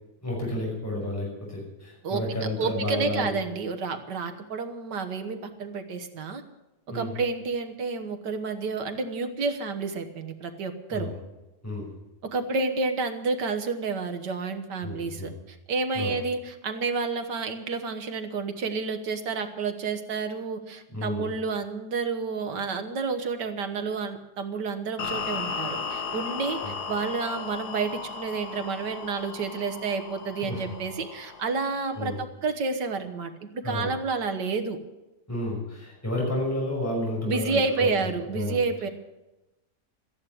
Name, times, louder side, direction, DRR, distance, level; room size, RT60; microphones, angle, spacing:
voice 1, 0.2-3.3 6.9-7.1 10.9-11.1 11.6-11.9 14.8-15.3 15.9-16.1 20.9-21.2 26.6-26.7 30.5-30.6 31.9-32.2 33.6-33.9 35.3-37.9 38.3-38.6, left 1 dB, 10° left, -4 dB, 5.6 m, -31 dB
voice 2, 2.6-6.4 6.9-11.1 12.2-34.8 37.2-38.9, right 4 dB, 90° right, 7 dB, 2.0 m, -30 dB
sound 1, 25.0-32.2, left 5 dB, 70° left, 1.8 m, -36 dB
13.5 x 10.5 x 9.3 m, 0.99 s
omnidirectional pair, 1.8 m